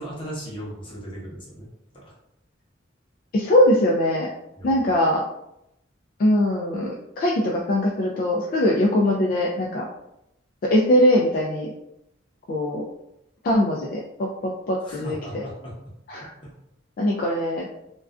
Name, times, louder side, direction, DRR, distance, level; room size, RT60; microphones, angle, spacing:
voice 1, 0.0-1.7 1.9-2.1 4.5-4.8 14.8-15.7 16.4-16.5, equal, 25° left, -4 dB, 0.8 m, -37 dB
voice 2, 3.3-4.3 4.6-5.2 6.2-9.9 10.6-11.7 12.5-12.8 13.4-15.5 16.1-16.3 17.0-17.7, left 1 dB, 50° left, -2 dB, 0.3 m, -21 dB
2.3 x 2.2 x 2.4 m, 0.82 s
head